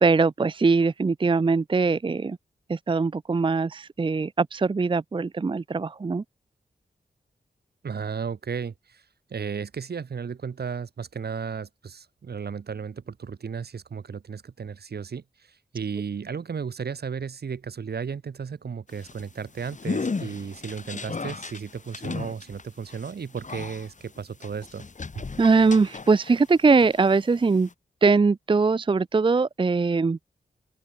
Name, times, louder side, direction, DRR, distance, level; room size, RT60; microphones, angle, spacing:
voice 1, 0.0-2.4 2.7-6.2 25.4-27.7 28.0-30.2, right 4 dB, 30° right, 0.5 m, -21 dB
voice 2, 7.8-9.0 9.3-24.9 25.1-25.2, right 6 dB, 75° right, 3.6 m, -34 dB
sound 1, 18.9-26.5 26.8-27.7, left 4 dB, 50° left, 4.5 m, -36 dB
open air
wide cardioid pair, 80°, 16 cm